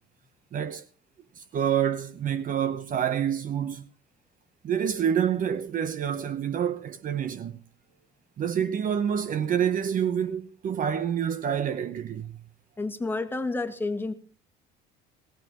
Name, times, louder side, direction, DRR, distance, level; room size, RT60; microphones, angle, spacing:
voice 1, 0.5-0.8 1.4-3.8 4.6-7.6 8.4-12.4, right 8 dB, 45° right, 0.8 m, -27 dB
voice 2, 12.8-14.1, left 3 dB, 10° left, 1.8 m, -30 dB
19.5 x 16.0 x 3.0 m
cardioid pair, 105°, 20 cm